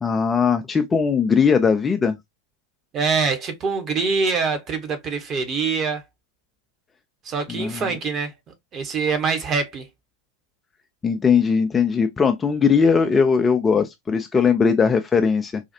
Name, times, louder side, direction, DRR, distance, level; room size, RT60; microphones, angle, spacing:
voice 1, 0.0-2.2 7.5-7.9 11.0-15.6, left 6 dB, 15° left, 0.4 m, -19 dB
voice 2, 2.9-6.0 7.2-8.3 8.7-9.9, right 5 dB, 30° right, 1.1 m, -24 dB
4.0 x 2.4 x 2.7 m
figure-of-eight pair, 90°, 0 cm